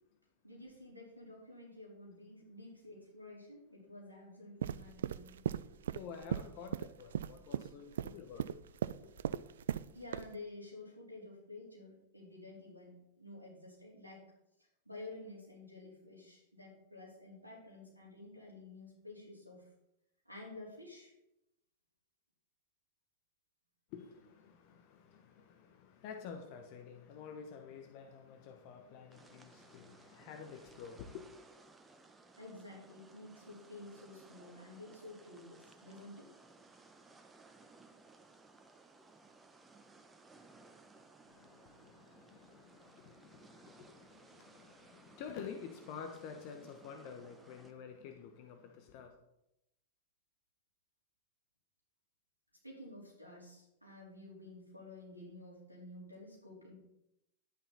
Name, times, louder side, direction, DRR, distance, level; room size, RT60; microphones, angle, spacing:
voice 1, 0.4-5.4 9.9-14.2 14.9-19.7 20.3-21.1 32.4-36.3 52.6-56.7, left 2 dB, 90° left, 3.9 m, -51 dB
sound 1, 4.6-9.9 10.1-10.3, right 10 dB, 60° right, 0.3 m, -37 dB
voice 2, 5.9-8.6 9.3-9.4 23.9-31.3 41.3-49.1, left 6 dB, 45° left, 1.1 m, -50 dB
sound 2, 29.1-47.7, right 3 dB, 15° right, 1.1 m, -60 dB
11.0 x 9.0 x 4.1 m
figure-of-eight pair, 90°, 0 cm